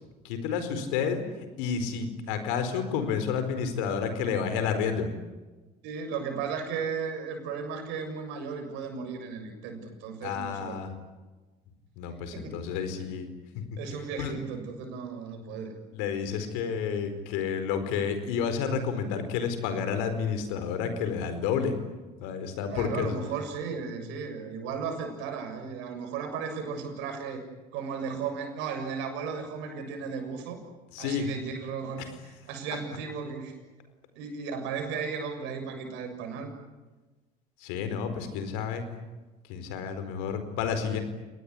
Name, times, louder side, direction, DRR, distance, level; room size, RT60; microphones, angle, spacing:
voice 1, 0.2-1.2 1.6-5.1 10.2-10.9 12.0-13.3 13.5-13.6 14.2-14.3 15.9-21.8 22.2-23.1 30.9-31.3 37.6-38.8 39.5-41.0, left 6 dB, 70° left, 9 dB, 4.6 m, -30 dB
voice 2, 5.8-10.8 12.3-12.6 13.8-15.7 22.7-27.4 27.7-30.6 31.0-33.5 34.1-36.5, right 5 dB, 70° right, 5 dB, 7.0 m, -35 dB
29.0 x 20.0 x 9.9 m, 1.2 s
hypercardioid pair, 65°, 20 cm